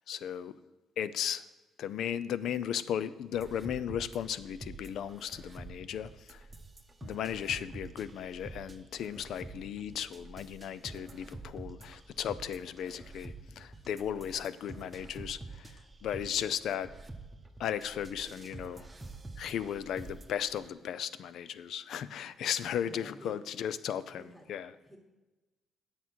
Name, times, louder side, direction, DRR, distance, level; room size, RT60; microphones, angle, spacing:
voice 1, 0.1-0.6 1.0-1.4 1.8-6.4 7.0-16.9 17.6-18.9 19.4-24.7, left 9 dB, 75° left, 0.5 m, -36 dB
sound 1, 3.3-20.7, right 2 dB, 20° right, 1.0 m, -48 dB
voice 2, 22.8-23.4 24.0-24.5 24.8-25.0, right 1 dB, ahead, 1.9 m, -51 dB
9.3 x 7.3 x 6.1 m
cardioid pair, 90°, 0 cm